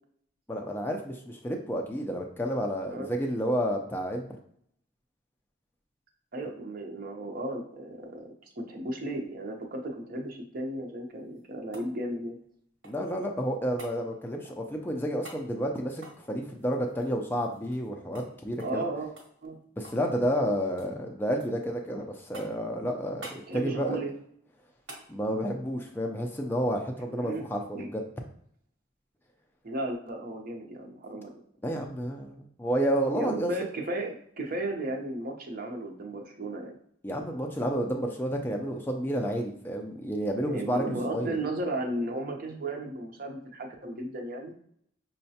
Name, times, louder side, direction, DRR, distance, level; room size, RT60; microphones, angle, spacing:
voice 1, 0.5-4.3 12.8-18.8 19.8-24.0 25.1-28.0 31.6-33.5 37.0-41.4, equal, 10° left, 2 dB, 0.3 m, -30 dB
voice 2, 6.3-12.4 18.6-19.1 19.4-19.6 23.5-24.1 27.1-27.4 27.7-27.9 29.6-31.3 33.2-36.8 40.4-44.5, right 1 dB, 45° right, 1 dB, 0.6 m, -35 dB
sound 1, 11.1-13.2 13.8-14.0 15.2-15.5 15.9-17.9 18.1-18.3 18.6-18.8 19.2-20.1 20.3-20.9 21.4-21.9 22.3-22.7 23.2-23.5 24.9-25.1 27.4-27.5, right 2 dB, 65° right, 1.0 m, -48 dB
5.5 x 2.1 x 2.7 m, 0.67 s
head